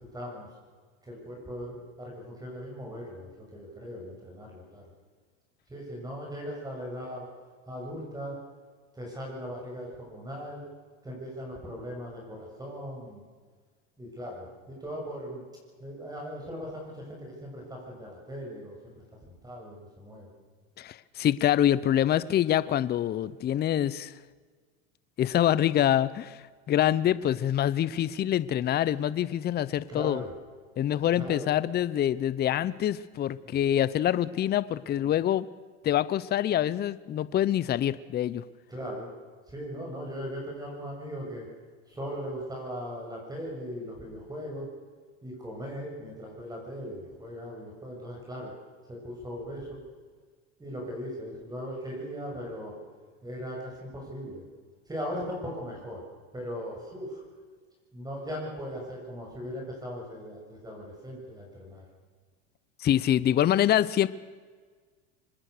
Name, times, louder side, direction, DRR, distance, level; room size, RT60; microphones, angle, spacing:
voice 1, 0.1-0.5 1.0-4.8 5.7-7.3 7.7-8.4 8.9-10.6 11.0-13.2 14.0-15.4 15.8-20.3 29.9-30.3 31.2-31.5 33.5-33.6 38.7-39.1 39.5-41.5 41.9-44.7 45.2-48.5 48.9-49.8 50.6-52.8 53.2-54.4 54.9-56.0 56.3-57.2 57.9-61.9, equal, 10° right, -1 dB, 7.2 m, -39 dB
voice 2, 20.8-24.1 25.2-30.2 30.8-35.5 35.8-38.4 62.8-64.1, left 11 dB, 25° left, 17 dB, 0.7 m, -25 dB
25.0 x 20.5 x 6.7 m, 1.5 s
supercardioid pair, 115°, 36 cm